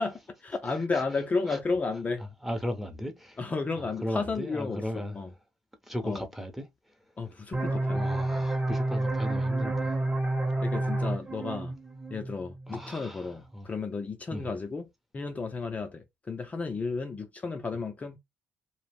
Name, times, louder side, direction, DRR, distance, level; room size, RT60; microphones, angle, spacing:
voice 1, 0.0-2.3 3.4-5.3 6.0-6.2 7.2-8.1 10.6-11.7 12.1-14.9 15.1-18.2, left 4 dB, 30° left, 0.4 m, -33 dB
voice 2, 2.4-3.4 3.8-5.2 5.8-6.7 7.9-9.9 12.7-13.7 14.3-14.5, equal, 5° right, 0.7 m, -36 dB
sound 1, 7.5-12.9, right 2 dB, 25° right, 1.0 m, -29 dB
2.3 x 2.0 x 3.3 m
supercardioid pair, 70°, 5 cm